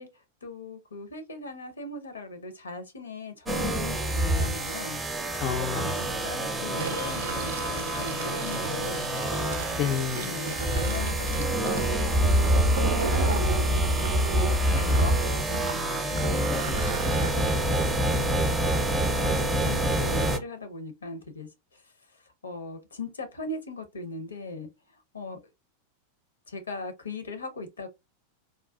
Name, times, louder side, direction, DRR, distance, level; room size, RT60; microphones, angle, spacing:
voice 1, 0.0-5.0 5.6-9.1 10.2-15.7 17.3-17.7 18.1-25.4 26.5-27.9, left 3 dB, 75° left, 0.7 m, -40 dB
sound 1, 3.5-20.4, right 1 dB, 10° right, 0.6 m, -26 dB
voice 2, 5.3-5.9 9.8-10.5 14.7-15.1 16.5-18.1, left 8 dB, 40° left, 0.3 m, -33 dB
Fill (with liquid), 6.7-13.5 14.0-17.3, right 5 dB, 65° right, 0.4 m, -37 dB
3.7 x 2.3 x 2.3 m
figure-of-eight pair, 90°, 0 cm